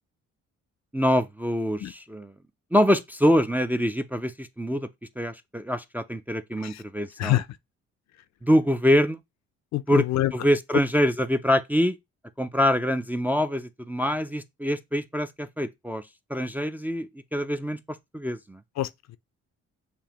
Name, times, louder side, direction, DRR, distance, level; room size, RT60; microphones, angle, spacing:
voice 1, 0.9-2.3 2.7-4.9 5.2-7.4 8.4-9.2 9.9-10.1 10.3-12.0 12.4-16.0 16.3-18.6, equal, 5° right, 0.4 m, -25 dB
voice 2, 9.7-10.3 18.8-19.2, left 15 dB, 65° left, 0.5 m, -26 dB
6.8 x 2.6 x 2.9 m
cardioid pair, 90°, 30 cm